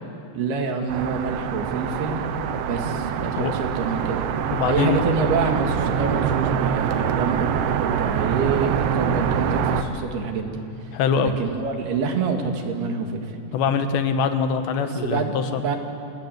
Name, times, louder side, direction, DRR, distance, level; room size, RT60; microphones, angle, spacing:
voice 1, 0.3-2.2 2.7-4.2 4.7-10.9 11.2-13.4 14.8-15.8, right 5 dB, 70° right, 3 dB, 3.9 m, -27 dB
sound 1, 0.9-9.8, right 8 dB, 85° right, 3.3 m, -24 dB
voice 2, 4.5-5.0 10.9-11.3 13.5-15.6, left 6 dB, 80° left, 8 dB, 3.5 m, -23 dB
27.0 x 20.0 x 9.2 m, 2.8 s
omnidirectional pair, 4.9 m